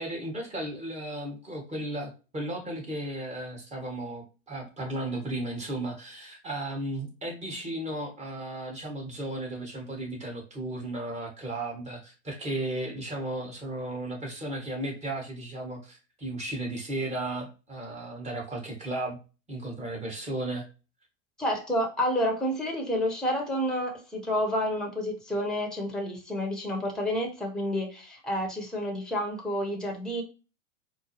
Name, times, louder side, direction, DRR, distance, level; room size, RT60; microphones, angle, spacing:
voice 1, 0.0-19.2 19.5-20.7, right 1 dB, 20° right, 1.5 m, -35 dB
voice 2, 21.4-30.2, equal, ahead, 1.1 m, -29 dB
4.5 x 2.2 x 3.0 m
hypercardioid pair, 105°, 38 cm